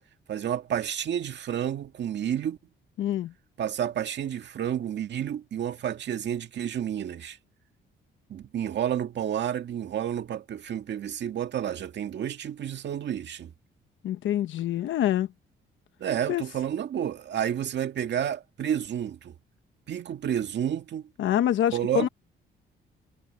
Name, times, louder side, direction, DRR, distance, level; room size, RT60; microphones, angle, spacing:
voice 1, 0.3-2.6 3.6-7.4 8.3-13.5 16.0-19.4 19.9-21.0 21.7-22.1, right 10 dB, 60° right, 2.0 m, -30 dB
voice 2, 3.0-3.3 14.0-15.3 16.3-16.4 21.2-22.1, left 11 dB, 75° left, 1.1 m, -25 dB
cardioid pair, 90°, 20 cm